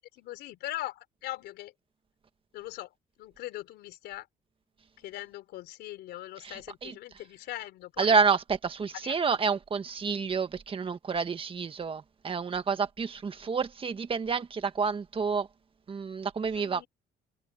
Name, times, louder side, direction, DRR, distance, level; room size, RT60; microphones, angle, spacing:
voice 1, 0.1-1.7 2.5-4.3 5.0-8.2 9.0-9.1 16.5-16.9, left 15 dB, 80° left, 3.9 m, -41 dB
voice 2, 6.4-6.9 8.0-15.5 15.9-16.8, right 5 dB, 30° right, 1.7 m, -29 dB
cardioid pair, 110°, 17 cm